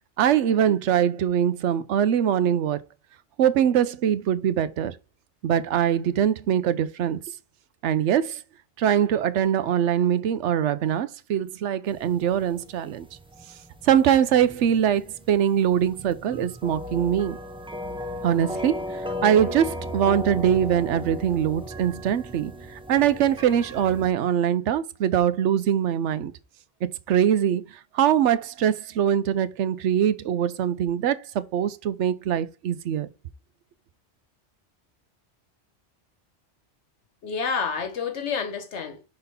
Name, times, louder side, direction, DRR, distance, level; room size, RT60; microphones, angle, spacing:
voice 1, 0.2-2.8 3.4-4.9 5.4-7.2 7.8-8.4 8.8-13.1 13.8-17.4 18.2-26.3 27.1-27.6 27.9-33.1, right 9 dB, 85° right, 0.9 m, -23 dB
sound 1, 11.9-24.1, equal, 5° right, 0.5 m, -36 dB
voice 2, 37.2-39.1, left 5 dB, 75° left, 1.4 m, -29 dB
5.3 x 4.1 x 5.5 m
omnidirectional pair, 1.2 m